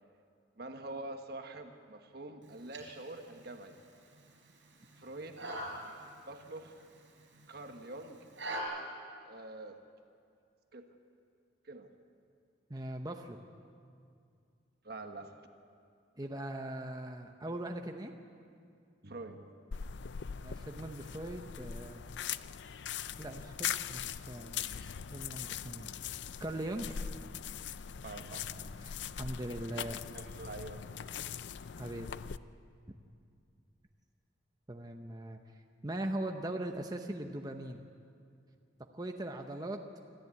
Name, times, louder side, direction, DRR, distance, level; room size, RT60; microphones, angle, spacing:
voice 1, 0.6-3.8 5.0-5.4 6.3-6.9 7.5-8.2 9.2-9.8 10.7-10.9 11.6-11.9 14.8-15.3 19.0-19.5 28.0-28.7 30.1-30.9, right 2 dB, 55° right, 5 dB, 1.3 m, -45 dB
sound 1, 2.4-8.6, right 1 dB, 75° right, 4.9 m, -46 dB
voice 2, 12.7-13.4 16.2-18.1 20.4-22.0 23.2-25.9 26.4-27.0 28.8-30.0 31.8-32.1 34.7-35.4 35.8-37.8 38.9-39.8, right 1 dB, 20° right, 4 dB, 0.9 m, -40 dB
sound 2, 19.7-32.4, left 8 dB, 65° left, 0.5 m, -41 dB
26.0 x 14.0 x 8.4 m, 2.4 s
head